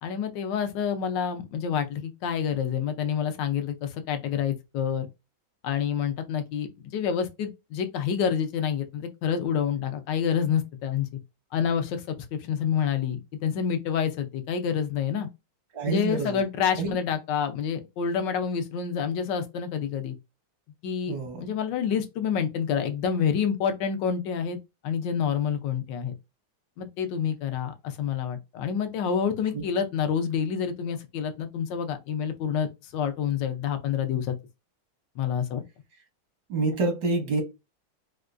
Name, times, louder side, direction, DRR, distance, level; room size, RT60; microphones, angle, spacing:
voice 1, 0.0-5.1 5.6-11.1 11.5-12.0 12.3-15.3 15.9-20.1 20.8-24.6 24.8-26.1 26.8-34.3 35.2-35.6, left 7 dB, 75° left, 1.3 m, -28 dB
voice 2, 15.7-16.4 16.8-16.9 21.1-21.4 29.5-29.6 36.5-37.4, right 3 dB, 85° right, 1.8 m, -27 dB
4.4 x 2.2 x 2.4 m
omnidirectional pair, 2.0 m